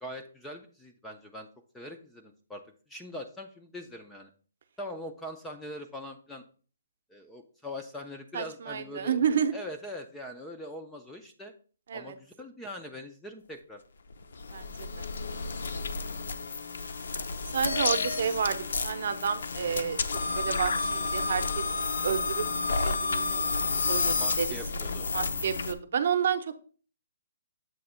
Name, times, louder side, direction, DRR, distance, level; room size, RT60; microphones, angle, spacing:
voice 1, 0.0-1.5 1.7-2.6 2.9-4.3 4.8-6.4 7.1-9.2 9.5-11.5 11.9-13.8 24.1-25.3, left 1 dB, 5° left, 4 dB, 0.3 m, -42 dB
voice 2, 8.3-9.5 11.9-12.1 14.5-15.0 17.5-20.0 20.3-22.5 22.8-23.5 23.9-24.5 25.1-26.5, right 7 dB, 45° right, 11 dB, 0.7 m, -30 dB
sound 1, 14.1-25.7, left 4 dB, 65° left, 0.6 m, -31 dB
7.7 x 2.8 x 5.5 m, 0.39 s
hypercardioid pair, 180°, 0 cm